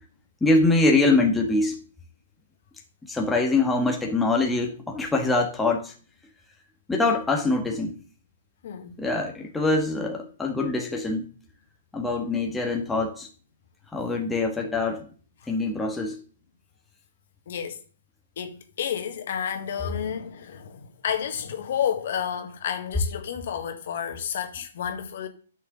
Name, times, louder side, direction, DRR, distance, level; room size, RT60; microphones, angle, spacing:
voice 1, 0.4-1.8 3.0-5.9 6.9-7.9 9.0-11.3 11.9-13.3 13.9-15.1 15.5-16.2, left 2 dB, 5° left, 1.7 m, -24 dB
voice 2, 17.5-17.8 18.4-25.3, left 8 dB, 60° left, 1.8 m, -31 dB
9.9 x 6.4 x 3.9 m
hypercardioid pair, 135°, 0 cm